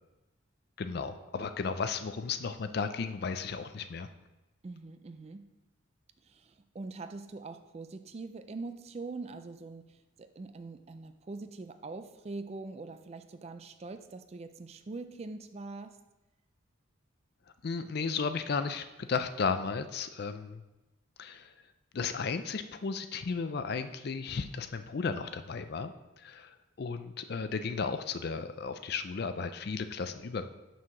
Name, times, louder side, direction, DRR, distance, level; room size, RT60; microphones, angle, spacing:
voice 1, 0.8-4.1 17.6-20.6 21.2-21.5 21.9-25.9 26.2-30.5, left 5 dB, 50° left, 10 dB, 0.4 m, -34 dB
voice 2, 4.6-5.5 6.2-16.0, right 3 dB, 30° right, 10 dB, 0.3 m, -43 dB
6.1 x 4.7 x 5.7 m, 1.0 s
head